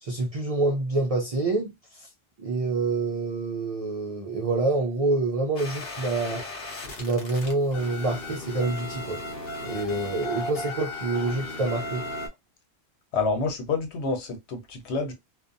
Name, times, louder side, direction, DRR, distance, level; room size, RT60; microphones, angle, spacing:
voice 1, 0.0-2.1 2.4-6.5 6.9-9.2 9.6-12.0, right 2 dB, 60° right, 0.4 m, -27 dB
sound 1, 5.6-12.3, left 2 dB, 60° left, 1.0 m, -36 dB
voice 2, 13.1-15.1, left 4 dB, 85° left, 1.0 m, -28 dB
2.5 x 2.2 x 2.4 m
omnidirectional pair, 1.1 m